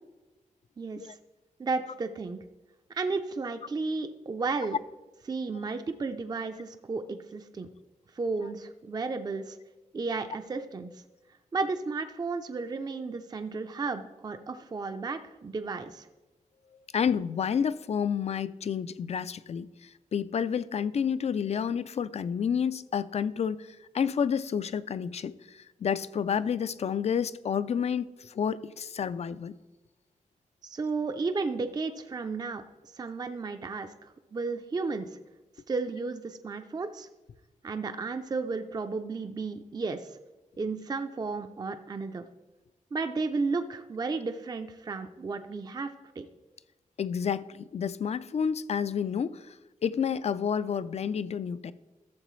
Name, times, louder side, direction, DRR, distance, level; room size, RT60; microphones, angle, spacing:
voice 1, 0.8-1.2 1.6-2.4 2.9-4.8 5.3-7.7 8.2-9.6 9.9-11.0 11.5-16.1 30.6-35.2 35.7-37.1 37.6-40.2 40.6-42.3 42.9-45.9 46.2-46.3, right 4 dB, 30° right, 0.4 m, -33 dB
voice 2, 16.9-29.5 47.0-49.6 49.8-51.7, left 7 dB, 50° left, 0.4 m, -30 dB
13.0 x 7.4 x 3.1 m
wide cardioid pair, 150°, 14 cm